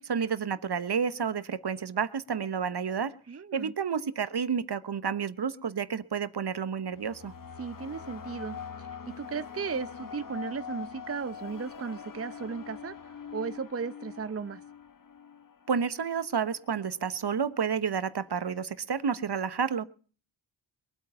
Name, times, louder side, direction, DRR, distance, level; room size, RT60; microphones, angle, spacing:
voice 1, 0.0-3.1 3.5-7.3 15.7-19.8, right 6 dB, 50° right, 15 dB, 1.1 m, -30 dB
voice 2, 3.3-3.7 7.6-8.9 9.2-12.9 13.3-14.6, right 5 dB, 30° right, 13 dB, 0.7 m, -36 dB
sound 1, 6.5-16.7, left 7 dB, 40° left, 1.1 m, -44 dB
22.5 x 8.7 x 5.5 m, 0.41 s
cardioid pair, 45°, 50 cm